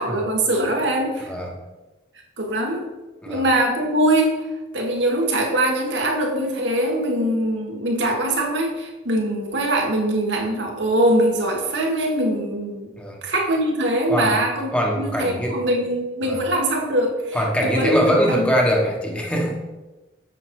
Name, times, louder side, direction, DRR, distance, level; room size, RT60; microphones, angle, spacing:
voice 1, 0.0-1.3 2.4-2.9 3.3-4.4 4.7-12.9 13.2-18.5, right 1 dB, 75° right, 1 dB, 1.6 m, -22 dB
voice 2, 14.7-15.6 16.2-16.4 17.3-19.6, equal, 5° left, -1 dB, 1.2 m, -22 dB
7.6 x 6.7 x 4.7 m, 1.1 s
head